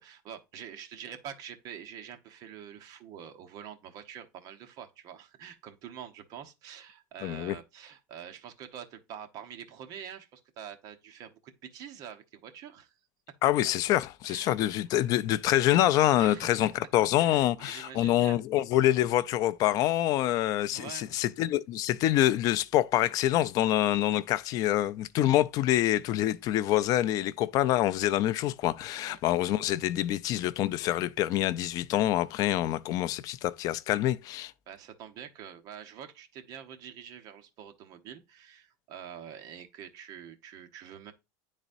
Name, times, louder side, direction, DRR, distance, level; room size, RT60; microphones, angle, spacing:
voice 1, 0.0-12.9 13.8-14.0 14.2-14.6 14.9-15.1 16.2-16.7 17.2-18.4 20.7-21.2 29.0-29.2 34.7-41.1, right 8 dB, 40° right, 1.0 m, -46 dB
voice 2, 7.2-7.6 13.4-34.5, left 13 dB, 40° left, 0.4 m, -26 dB
9.9 x 4.1 x 2.5 m
supercardioid pair, 155°, 10 cm